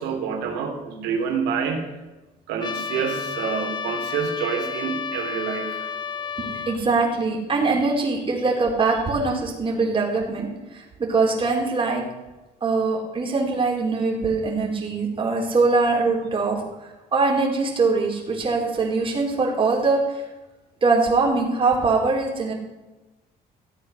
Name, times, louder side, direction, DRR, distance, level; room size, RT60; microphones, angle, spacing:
voice 1, 0.0-1.9 2.5-5.9, right 6 dB, 90° right, 3 dB, 2.8 m, -27 dB
Trumpet, 2.6-6.8, left 6 dB, 25° left, 0.9 m, -31 dB
voice 2, 6.4-12.0 12.6-16.6 17.1-20.2 20.8-22.5, right 3 dB, 30° right, -1 dB, 3.9 m, -22 dB
15.0 x 8.6 x 6.7 m, 1.1 s
cardioid pair, 110°, 17 cm